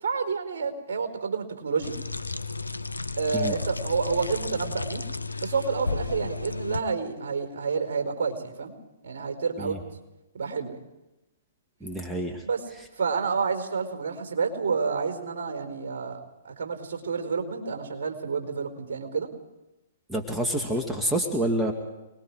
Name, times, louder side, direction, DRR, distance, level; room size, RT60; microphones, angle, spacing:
voice 1, 0.0-1.9 3.2-5.0 5.4-8.7 9.0-9.8 10.3-10.8 12.4-12.6 13.0-16.2 16.4-19.3, right 5 dB, 55° right, 6 dB, 4.6 m, -29 dB
sound 1, 1.8-6.8, left 3 dB, 85° left, 1.0 m, -33 dB
voice 2, 11.8-12.4 20.1-21.7, right 1 dB, 5° right, 2 dB, 2.3 m, -27 dB
28.5 x 20.5 x 4.9 m, 1.0 s
figure-of-eight pair, 120°, 0 cm